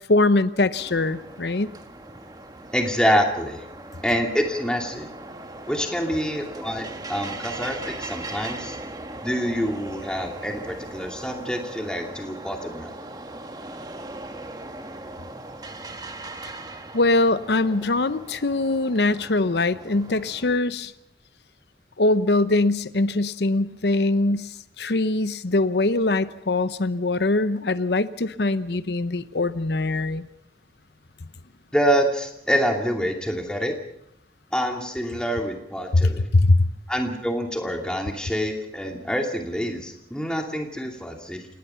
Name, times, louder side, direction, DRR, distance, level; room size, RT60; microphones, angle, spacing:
voice 1, 0.1-1.7 16.9-20.9 22.0-30.3 35.9-36.7, left 2 dB, 75° left, 14 dB, 0.9 m, -22 dB
sound 1, 0.7-20.6, right 2 dB, 20° right, 1.5 m, -39 dB
voice 2, 2.7-3.6 4.0-5.1 5.7-8.8 9.2-12.9 31.7-33.7 34.5-36.3 36.9-41.5, equal, 5° left, 2 dB, 2.6 m, -26 dB
28.0 x 18.5 x 5.7 m, 0.74 s
head